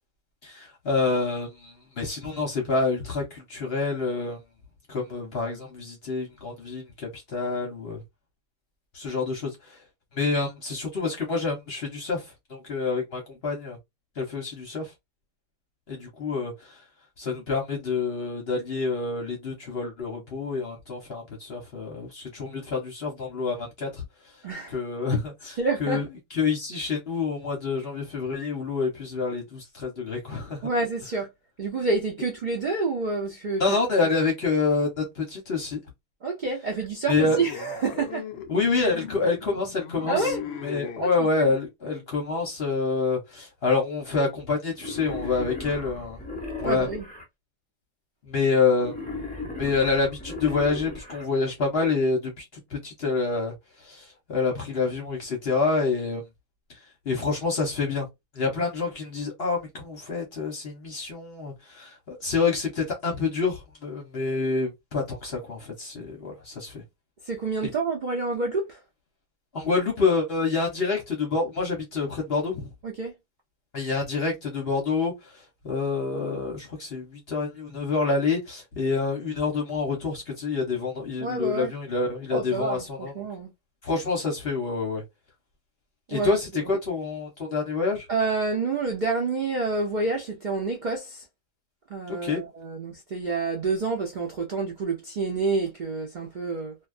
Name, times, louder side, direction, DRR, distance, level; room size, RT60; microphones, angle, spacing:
voice 1, 0.4-4.4 4.9-8.0 8.9-9.8 10.1-13.8 14.2-14.9 15.9-16.8 17.2-24.0 24.7-30.7 33.6-35.8 37.1-37.4 38.5-40.3 40.6-46.2 46.6-46.9 48.2-48.9 49.6-52.4 52.7-56.2 56.7-58.1 58.3-66.8 67.6-67.7 69.5-72.7 73.7-83.1 83.8-85.0 86.1-88.1 92.1-92.4, left 4 dB, 50° left, 0.9 m, -27 dB
voice 2, 24.4-24.8 25.6-26.0 30.6-31.3 31.6-33.8 36.2-38.2 40.1-40.4 41.0-41.1 41.4-41.5 46.6-47.0 67.3-68.8 72.8-73.1 81.2-81.7 82.3-83.5 86.1-86.7 88.1-91.2 91.9-96.7, right 3 dB, 70° right, 0.4 m, -28 dB
sound 1, 37.1-41.1, left 9 dB, 70° left, 0.6 m, -38 dB
Wild animals, 44.8-47.2 48.8-51.2, left 3 dB, 10° left, 0.4 m, -36 dB
2.4 x 2.2 x 2.4 m
omnidirectional pair, 1.5 m